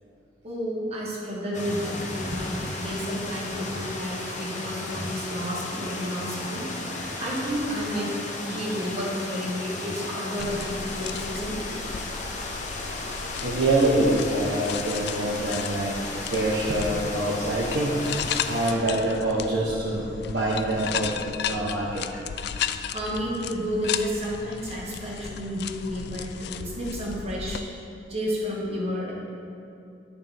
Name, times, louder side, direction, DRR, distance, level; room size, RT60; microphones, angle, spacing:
voice 1, 0.4-6.7 7.2-8.2 8.5-11.7 22.9-27.6 28.1-29.1, equal, 35° right, -5 dB, 1.6 m, -31 dB
sound 1, 1.5-18.7, left 2 dB, 40° left, 1.0 m, -35 dB
sound 2, 10.4-27.6, left 8 dB, 60° left, 0.3 m, -35 dB
voice 2, 13.4-18.0 18.4-21.1 21.5-22.2, right 1 dB, 70° right, -6 dB, 1.0 m, -25 dB
10.5 x 6.9 x 3.5 m, 2.7 s
head